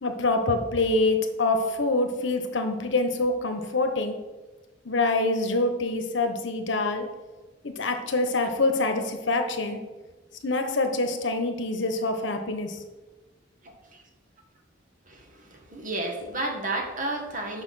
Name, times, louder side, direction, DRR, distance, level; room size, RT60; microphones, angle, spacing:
voice 1, 0.0-4.1 4.8-7.1 7.6-9.8 10.4-12.8, left 2 dB, 70° left, 6 dB, 1.0 m, -25 dB
voice 2, 13.6-14.0 15.1-17.6, right 2 dB, 45° right, 3 dB, 1.4 m, -32 dB
6.5 x 5.6 x 5.6 m, 1.2 s
head